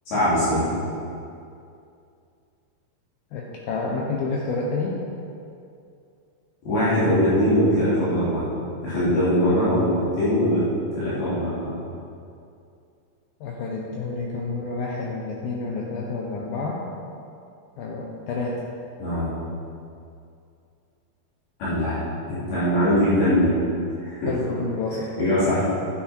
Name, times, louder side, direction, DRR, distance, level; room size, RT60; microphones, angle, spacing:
voice 1, 0.1-0.8 6.6-8.5 8.8-10.6 11.0-11.7 19.0-19.4 21.6-23.5 24.0-24.3 25.2-25.6, equal, 55° left, -12 dB, 5.0 m, -21 dB
voice 2, 3.3-5.0 13.4-16.9 17.8-18.7 24.3-25.1, left 3 dB, 75° left, -2 dB, 2.2 m, -29 dB
11.5 x 9.8 x 4.6 m, 2.5 s
omnidirectional pair, 5.3 m